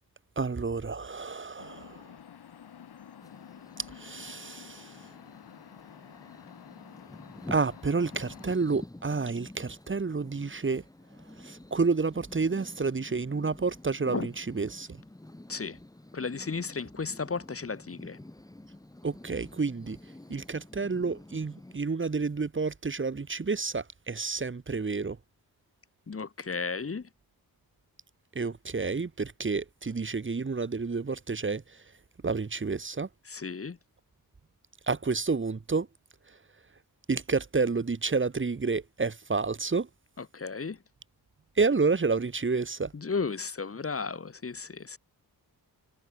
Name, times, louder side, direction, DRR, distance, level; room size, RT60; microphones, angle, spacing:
voice 1, 0.4-2.1 3.8-5.1 7.5-10.8 11.4-15.0 19.0-25.2 28.3-31.9 32.2-33.1 34.9-35.9 36.3-36.4 37.1-39.9 41.6-42.9, right 4 dB, 30° right, 2.2 m, -30 dB
sound 1, 1.6-8.6, left 8 dB, 80° left, 3.0 m, -50 dB
sound 2, 3.2-21.8, left 1 dB, 10° left, 1.9 m, -49 dB
voice 2, 16.1-18.2 26.1-27.1 33.2-33.8 40.2-40.8 42.9-45.0, left 5 dB, 35° left, 2.4 m, -34 dB
wide cardioid pair, 130°, 38 cm